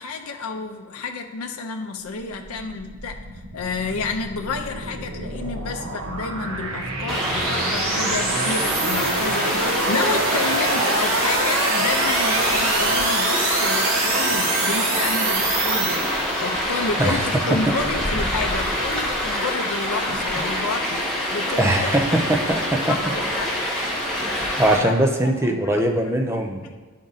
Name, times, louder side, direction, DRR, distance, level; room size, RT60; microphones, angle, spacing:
voice 1, 0.0-3.2 3.5-21.9 22.9-23.5 24.8-24.9 25.6-25.8 26.6-26.8, left 4 dB, 80° left, 4 dB, 0.5 m, -30 dB
sound 1, 2.0-16.6, right 3 dB, 65° right, 1.0 m, -26 dB
Stream, 7.1-24.8, left 1 dB, 5° left, 1.2 m, -25 dB
sound 2, 7.7-18.1, right 1 dB, 40° right, 0.8 m, -31 dB
voice 2, 21.6-23.1 23.7-23.8 24.6-26.7, right 1 dB, 10° right, 3 dB, 0.5 m, -21 dB
10.0 x 3.7 x 4.0 m, 1.4 s
head